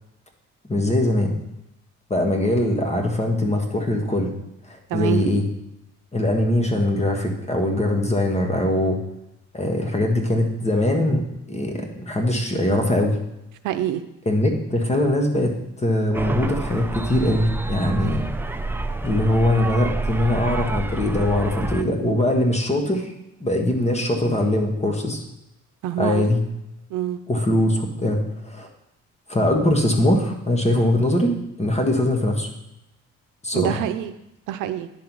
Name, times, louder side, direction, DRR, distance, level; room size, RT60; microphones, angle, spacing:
voice 1, 0.7-1.3 2.1-4.3 4.7-5.4 6.1-9.0 9.5-11.2 11.5-13.2 14.2-15.5 15.8-18.2 19.0-23.1 23.4-25.2 26.0-26.4 27.3-28.7 29.3-32.5 33.4-33.8, left 1 dB, 20° left, 2 dB, 1.6 m, -21 dB
voice 2, 4.9-5.3 13.6-14.0 25.8-26.2 26.9-27.2 33.5-34.1 34.5-34.9, right 11 dB, 90° right, 9 dB, 0.6 m, -25 dB
sound 1, 16.1-21.8, right 2 dB, 5° right, 0.5 m, -28 dB
10.5 x 3.8 x 6.1 m, 0.87 s
cardioid pair, 90°, 30 cm